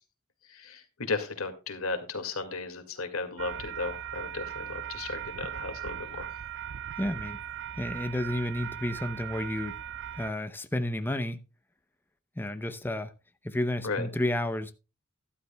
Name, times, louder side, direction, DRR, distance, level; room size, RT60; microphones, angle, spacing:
voice 1, 0.4-6.3 13.8-14.1, left 3 dB, 85° left, 2.1 m, -35 dB
sound 1, 3.4-10.3, right 10 dB, 60° right, 0.4 m, -39 dB
voice 2, 7.0-7.4 7.8-9.8 10.1-11.4 12.4-13.1 13.4-14.7, left 1 dB, 10° left, 0.7 m, -31 dB
12.5 x 12.0 x 2.3 m
head